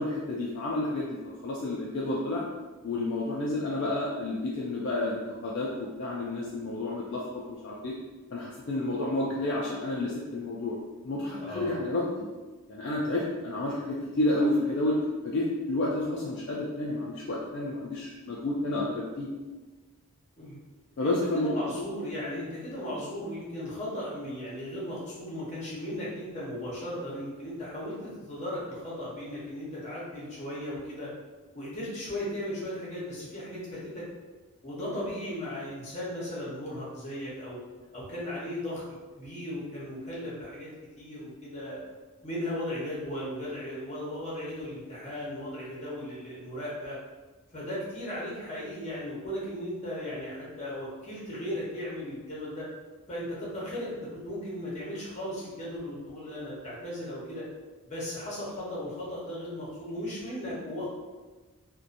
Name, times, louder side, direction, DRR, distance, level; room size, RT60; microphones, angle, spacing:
voice 1, 0.0-2.4 2.8-7.9 8.3-10.8 11.0-12.3 12.7-15.0 15.2-19.3 21.0-21.9 22.3-22.4, left 2 dB, 55° left, -5 dB, 0.3 m, -30 dB
voice 2, 11.3-11.8 20.4-20.6 21.0-31.1 31.5-34.1 34.6-37.6 37.9-38.8 39.2-40.7 41.0-41.8 42.2-47.0 47.5-52.7 53.1-57.4 57.8-60.9, left 1 dB, 30° left, -6 dB, 0.8 m, -36 dB
2.7 x 2.1 x 2.5 m, 1.3 s
head